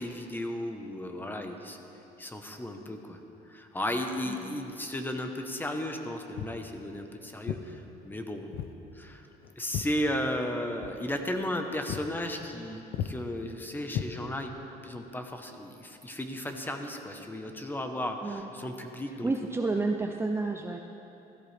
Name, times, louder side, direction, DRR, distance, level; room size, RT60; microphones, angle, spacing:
voice 1, 0.0-1.8 2.2-3.2 3.5-8.5 8.9-9.3 9.6-14.5 14.8-19.3, left 1 dB, 10° left, 5 dB, 1.0 m, -35 dB
voice 2, 4.2-4.6 18.2-18.5 19.2-20.8, right 3 dB, 15° right, 3 dB, 0.5 m, -30 dB
Walk footsteps, 6.3-6.6 7.5-7.7 8.5-8.8 9.1-10.5 10.8-11.0 11.4-11.6 11.9-12.1 12.4-12.7 12.9-13.2 13.9-14.6, left 10 dB, 70° left, 0.6 m, -36 dB
15.5 x 13.5 x 3.4 m, 3.0 s
cardioid pair, 110°, 17 cm